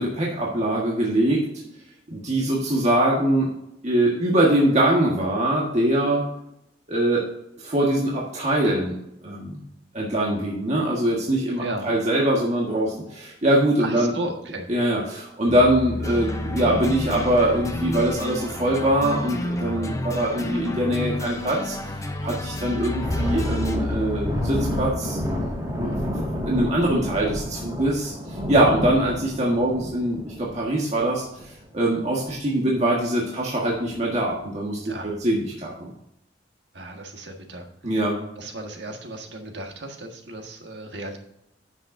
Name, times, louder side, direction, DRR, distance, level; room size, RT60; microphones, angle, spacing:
voice 1, 0.0-1.4 2.1-3.5 3.8-6.2 6.9-7.2 7.6-9.0 9.2-9.6 9.9-14.1 14.7-25.2 25.8-26.0 26.4-35.9 37.8-38.2, right 1 dB, 40° right, -3 dB, 1.6 m, -23 dB
voice 2, 11.6-11.9 13.8-14.7 34.8-35.2 36.7-37.7 38.4-41.2, right 1 dB, 70° right, 3 dB, 1.6 m, -34 dB
sound 1, 15.5-24.9, left 2 dB, 75° left, 2.7 m, -33 dB
sound 2, 16.0-23.8, left 1 dB, 20° left, 0.8 m, -32 dB
Thunder, 22.9-31.8 32.2-32.4 32.8-33.0 33.6-34.1, equal, 20° right, 2.0 m, -30 dB
9.8 x 7.3 x 2.7 m, 0.80 s
head